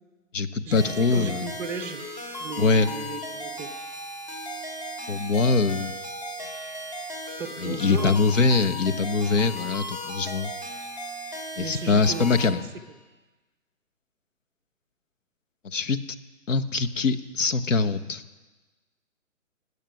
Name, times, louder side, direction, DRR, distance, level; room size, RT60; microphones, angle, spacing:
voice 1, 0.3-1.5 2.6-2.9 5.1-5.9 7.6-10.5 11.6-12.6 15.6-16.0 16.5-18.2, left 4 dB, 70° left, 10 dB, 1.2 m, -23 dB
sound 1, 0.7-12.5, equal, 30° left, 3.4 m, -36 dB
voice 2, 1.1-2.0 2.4-3.7 7.4-8.2 11.6-12.6, right 5 dB, 5° right, 5 dB, 0.7 m, -35 dB
18.0 x 8.6 x 9.1 m, 1.2 s
hypercardioid pair, 145°, 39 cm